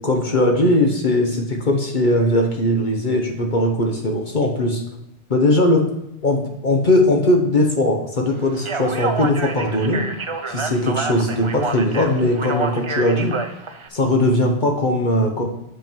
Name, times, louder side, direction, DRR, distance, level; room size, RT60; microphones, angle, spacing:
voice 1, 0.0-4.8 5.3-5.8 6.2-10.0 10.5-13.4 13.9-15.4, left 1 dB, 50° left, 2 dB, 1.2 m, -19 dB
Speech, 8.5-13.9, right 3 dB, 35° right, 0.6 m, -28 dB
7.1 x 6.0 x 4.5 m, 0.84 s
omnidirectional pair, 1.1 m